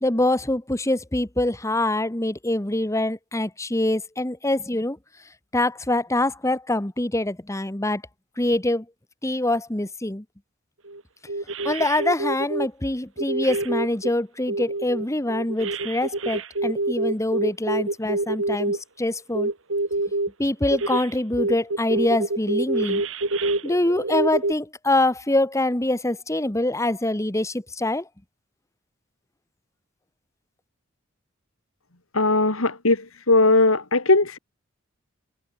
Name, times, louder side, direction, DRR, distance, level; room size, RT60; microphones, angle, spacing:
voice 1, 0.0-5.0 5.5-8.0 8.4-8.8 9.2-10.2 11.6-19.5 20.4-23.0 23.6-28.0, left 1 dB, 15° left, 1.3 m, -24 dB
sound 1, 10.9-11.0 11.3-12.7 13.2-14.1 14.5-18.8 19.3-20.3 20.7-21.1 21.4-24.5, right 2 dB, 65° right, 2.9 m, -26 dB
voice 2, 32.1-34.4, left 2 dB, 80° left, 3.1 m, -19 dB
head